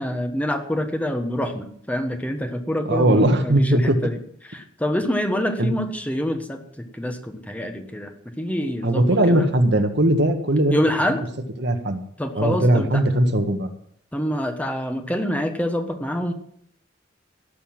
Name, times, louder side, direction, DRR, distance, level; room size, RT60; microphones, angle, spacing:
voice 1, 0.0-4.2 4.4-9.5 10.7-11.2 12.2-13.0 14.1-16.3, equal, 5° left, 6 dB, 1.3 m, -26 dB
voice 2, 2.9-4.0 5.6-5.8 8.8-10.8 11.6-12.0 12.4-13.7, right 1 dB, 60° right, 6 dB, 1.6 m, -19 dB
17.0 x 6.9 x 7.5 m, 0.65 s
head